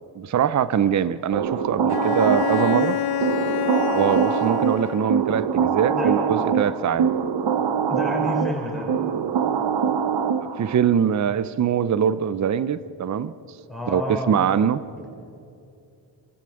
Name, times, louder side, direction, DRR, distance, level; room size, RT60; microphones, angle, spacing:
voice 1, 0.2-3.0 3.9-7.1 10.4-13.3 13.9-14.0 14.3-14.8, right 8 dB, 40° right, 16 dB, 0.7 m, -23 dB
sound 1, 1.3-10.8, right 7 dB, 65° right, 1.2 m, -24 dB
Bowed string instrument, 1.9-5.4, left 11 dB, 55° left, 0.6 m, -28 dB
voice 2, 7.9-8.9 13.7-14.4, left 1 dB, ahead, -2 dB, 6.7 m, -29 dB
27.0 x 14.5 x 7.8 m, 2.6 s
cardioid pair, 95°, 45 cm